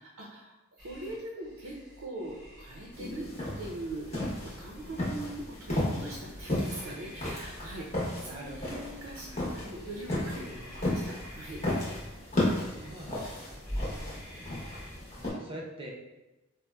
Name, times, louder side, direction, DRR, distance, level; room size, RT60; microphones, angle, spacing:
voice 1, 0.0-3.3 3.6-9.3 9.5-11.6 12.7-12.9 15.4-15.5, right 1 dB, 80° right, -3 dB, 0.5 m, -42 dB
sound 1, 0.8-15.4, equal, 5° right, 0.8 m, -48 dB
sound 2, 2.9-15.3, left 1 dB, 30° left, 0.8 m, -34 dB
voice 2, 8.2-8.9 9.3-9.4 12.6-13.6 15.2-15.9, right 1 dB, 25° right, -1 dB, 0.4 m, -45 dB
4.0 x 2.0 x 2.2 m, 1.0 s
head